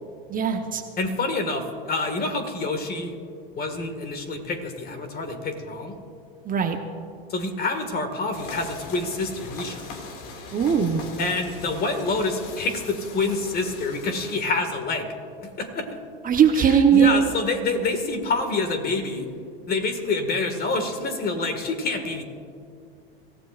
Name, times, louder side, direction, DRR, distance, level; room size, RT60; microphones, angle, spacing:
voice 1, 0.3-0.8 6.4-6.8 10.5-11.0 16.2-17.2, right 7 dB, 30° right, 5 dB, 1.1 m, -19 dB
voice 2, 1.0-3.2 3.6-6.0 7.3-9.9 11.2-15.2 15.4-16.0 16.6-19.3 19.7-22.2, left 3 dB, 30° left, 6 dB, 2.0 m, -27 dB
sound 1, 8.3-14.4, left 4 dB, 65° left, 2.4 m, -40 dB
25.5 x 15.0 x 2.6 m, 2.4 s
hypercardioid pair, 105°, 30 cm